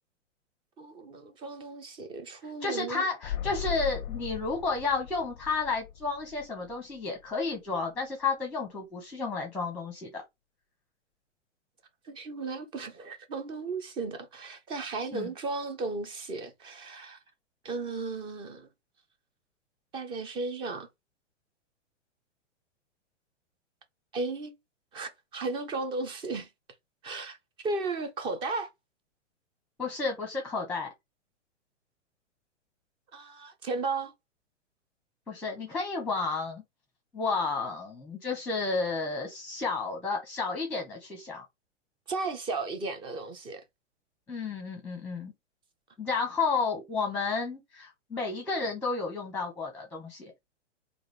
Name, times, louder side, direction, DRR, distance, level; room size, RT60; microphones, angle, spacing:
voice 1, 0.8-3.0 12.1-17.2 17.6-18.7 19.9-20.9 24.1-24.5 24.9-26.5 27.0-27.4 27.6-28.7 33.1-34.1 42.1-43.6, right 3 dB, 15° right, 0.5 m, -35 dB
voice 2, 2.6-10.2 15.1-15.3 29.8-30.9 35.3-36.6 37.1-41.4 44.3-45.3 46.0-50.3, left 4 dB, 5° left, 0.8 m, -32 dB
sound 1, 3.2-7.0 7.2-7.3, left 10 dB, 35° left, 0.5 m, -38 dB
3.6 x 2.5 x 3.3 m
hypercardioid pair, 120°, 37 cm